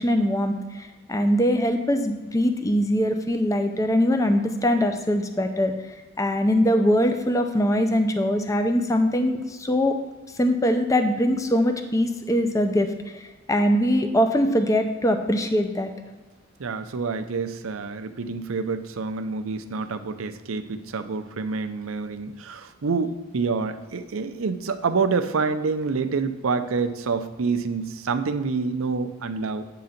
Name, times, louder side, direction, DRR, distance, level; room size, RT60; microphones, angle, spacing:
voice 1, 0.0-5.7 6.2-10.0 10.4-15.9, equal, 15° left, 6 dB, 0.5 m, -22 dB
voice 2, 16.6-29.6, right 4 dB, 75° right, 9 dB, 0.6 m, -27 dB
8.4 x 3.9 x 5.8 m, 1.3 s
head